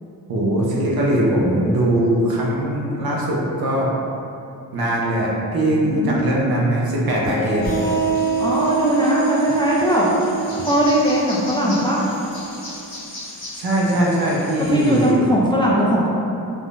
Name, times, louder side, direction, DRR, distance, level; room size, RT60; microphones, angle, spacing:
voice 1, 0.3-3.9 4.7-7.9 13.5-15.3, right 1 dB, 65° right, -4 dB, 0.7 m, -20 dB
voice 2, 5.8-6.2 8.4-10.1 10.6-12.1 14.7-16.1, equal, 15° left, -6 dB, 0.3 m, -19 dB
sound 1, 7.2-12.6, right 5 dB, 25° right, 0.9 m, -25 dB
sound 2, 7.6-15.1, left 1 dB, 80° left, 1.3 m, -38 dB
3.6 x 2.1 x 2.4 m, 2.7 s
cardioid pair, 80°, 38 cm